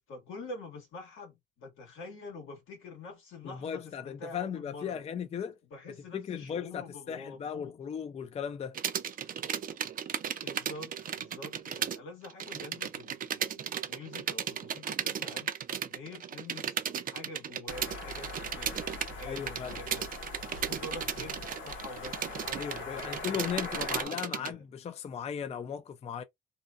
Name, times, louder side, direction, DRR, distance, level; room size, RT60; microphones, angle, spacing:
voice 1, 0.1-5.0 5.7-7.7 10.4-15.5 15.8-16.7 17.0-20.1 20.5-24.6, left 3 dB, 90° left, 1.4 m, -46 dB
voice 2, 3.4-5.6 6.1-8.8 19.3-19.8 22.5-26.2, left 8 dB, 35° left, 0.4 m, -37 dB
sound 1, 8.7-12.0 12.2-24.5, right 9 dB, 45° right, 0.4 m, -35 dB
sound 2, 17.7-24.1, left 3 dB, 70° left, 1.3 m, -42 dB
2.7 x 2.2 x 2.3 m
cardioid pair, 90°, 20 cm